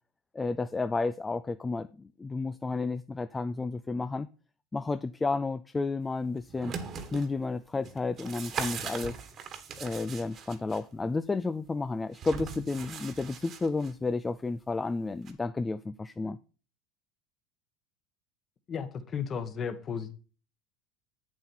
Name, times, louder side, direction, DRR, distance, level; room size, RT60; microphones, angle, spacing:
voice 1, 0.3-4.3 4.7-6.7 7.1-9.2 9.8-16.4, left 3 dB, 15° left, 0.4 m, -32 dB
sound 1, 6.4-7.3 7.8-10.8 12.1-13.9 15.3-15.4, right 6 dB, 40° right, 1.5 m, -39 dB
voice 2, 18.7-20.1, left 6 dB, 35° left, 1.4 m, -34 dB
8.1 x 7.5 x 4.4 m
supercardioid pair, 115°, 0 cm